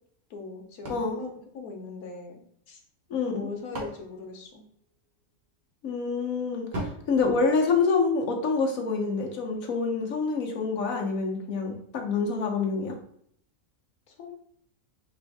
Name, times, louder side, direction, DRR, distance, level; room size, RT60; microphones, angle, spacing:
voice 1, 0.3-2.4 2.7-2.8 3.2-4.6 14.1-14.3, left 4 dB, 90° left, 3 dB, 1.4 m, -40 dB
sound 1, 0.8-2.4 3.2-5.2 6.7-8.3, right 1 dB, 35° right, 1.1 m, -41 dB
voice 2, 0.9-1.2 3.1-3.5 5.8-13.0, left 4 dB, 70° left, 1 dB, 1.3 m, -27 dB
4.9 x 2.6 x 3.5 m, 0.65 s
omnidirectional pair, 1.5 m